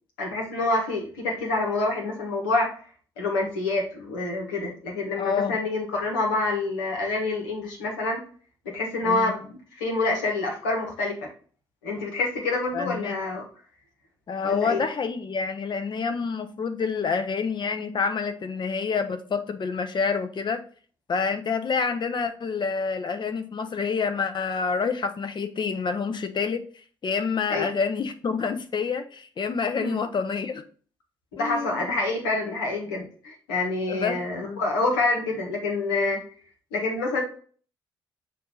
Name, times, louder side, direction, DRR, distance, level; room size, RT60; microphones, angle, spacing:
voice 1, 0.2-2.8 3.2-8.2 8.6-11.3 11.8-13.4 14.4-14.8 27.5-27.7 29.8-30.0 31.3-36.2 36.7-37.2, left 2 dB, 80° left, 0 dB, 1.4 m, -27 dB
voice 2, 5.2-5.6 9.1-9.3 12.7-13.2 14.3-20.6 21.1-26.6 27.0-30.6 31.4-32.0 33.9-34.6, left 5 dB, 45° left, 9 dB, 0.8 m, -28 dB
6.5 x 2.7 x 5.5 m, 0.43 s
hypercardioid pair, 45°, 11 cm